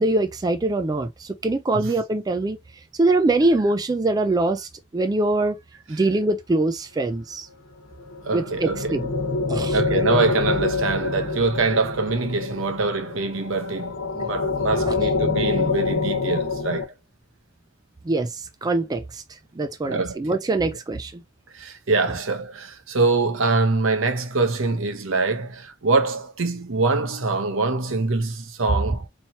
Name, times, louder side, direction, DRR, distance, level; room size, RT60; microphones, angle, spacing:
voice 1, 0.0-2.6 3.0-5.6 5.9-7.5 8.3-9.1 9.5-9.8 14.8-15.0 18.1-19.2 19.6-21.2, right 2 dB, 20° right, 0.3 m, -23 dB
sound 1, 8.0-16.8, left 3 dB, 85° left, 1.1 m, -26 dB
voice 2, 8.2-9.0 9.7-16.9 19.8-20.4 21.5-29.1, right 3 dB, 70° right, 0.9 m, -24 dB
4.2 x 3.1 x 2.7 m
head